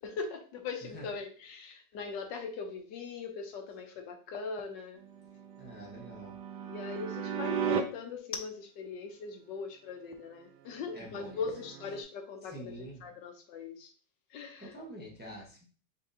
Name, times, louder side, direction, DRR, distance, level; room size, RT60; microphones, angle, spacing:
voice 1, 0.0-5.0 6.6-13.9 14.3-14.7, left 5 dB, 75° left, 5 dB, 1.3 m, -40 dB
sound 1, 5.0-7.8 10.8-12.0, right 7 dB, 70° right, 1.1 m, -36 dB
voice 2, 5.6-6.3 10.9-11.5 12.4-13.0 14.6-15.7, right 1 dB, 10° right, -3 dB, 0.7 m, -46 dB
5.5 x 3.4 x 2.7 m, 0.40 s
omnidirectional pair, 2.1 m